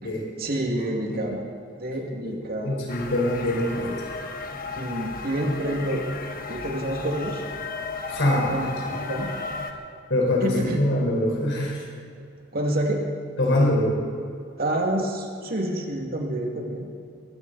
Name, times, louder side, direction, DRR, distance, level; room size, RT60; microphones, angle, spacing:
voice 1, 0.4-1.4 1.8-2.8 4.7-6.0 6.5-7.4 8.5-9.3 10.4-10.8 12.5-13.0 14.6-16.9, right 1 dB, 55° right, 1 dB, 2.2 m, -28 dB
voice 2, 2.2-3.9 8.1-8.9 10.1-11.8 13.4-14.0, left 1 dB, 75° left, -2 dB, 4.4 m, -24 dB
sound 1, 2.9-9.7, left 4 dB, 50° left, 1.3 m, -34 dB
22.0 x 14.5 x 4.1 m, 2.4 s
head